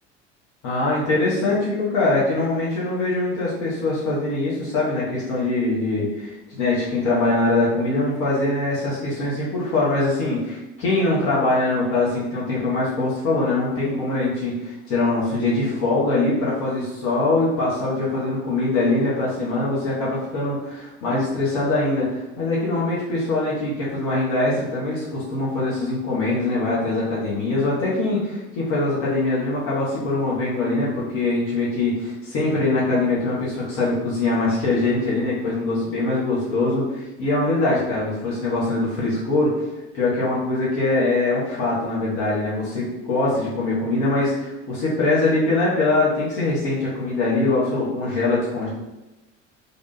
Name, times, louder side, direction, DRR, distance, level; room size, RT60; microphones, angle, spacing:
voice 1, 0.6-39.5 39.9-48.7, left 2 dB, 55° left, -7 dB, 1.3 m, -23 dB
3.5 x 2.4 x 4.1 m, 1.0 s
figure-of-eight pair, 65°, 36 cm